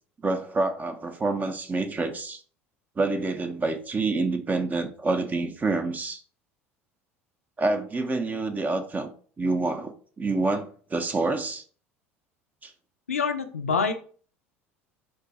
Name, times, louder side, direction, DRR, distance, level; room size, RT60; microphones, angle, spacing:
voice 1, 0.2-2.4 3.0-6.2 7.6-9.1 9.4-11.6 12.6-12.7, right 3 dB, 25° right, 7 dB, 0.5 m, -27 dB
voice 2, 13.1-13.9, left 5 dB, 85° left, 7 dB, 0.4 m, -26 dB
2.5 x 2.2 x 3.9 m, 0.43 s
hypercardioid pair, 70°, 7 cm